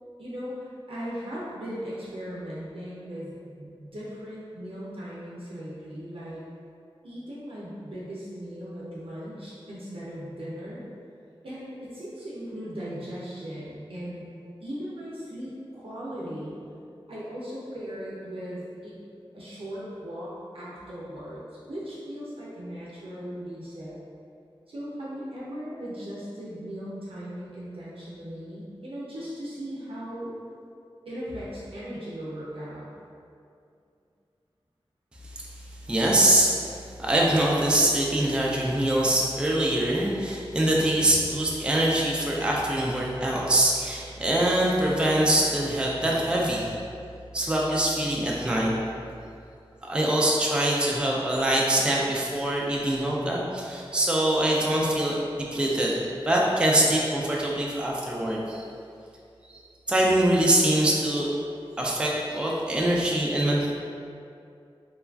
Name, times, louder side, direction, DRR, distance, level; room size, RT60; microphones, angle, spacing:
voice 1, 0.2-6.4 7.0-10.8 11.4-14.3 14.6-16.6 17.1-19.0 19.3-21.4 21.7-24.0 24.7-30.3 31.1-32.9, equal, 70° right, -8 dB, 0.5 m, -38 dB
voice 2, 35.9-46.8 47.3-48.7 49.8-58.7 59.9-61.3 61.8-63.7, right 1 dB, 10° right, -3 dB, 0.3 m, -24 dB
3.0 x 2.3 x 2.3 m, 2.5 s
wide cardioid pair, 70°, 10 cm